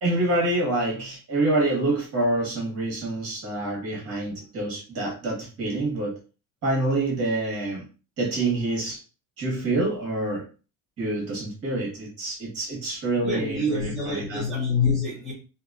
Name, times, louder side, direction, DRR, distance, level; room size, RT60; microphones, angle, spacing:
voice 1, 0.0-6.1 6.6-7.8 8.2-9.0 9.4-10.4 11.0-14.4, right 2 dB, 40° right, 1.5 m, -26 dB
voice 2, 13.1-15.3, left 3 dB, ahead, 1.2 m, -26 dB
2.9 x 2.6 x 2.5 m
cardioid pair, 150°, 35 cm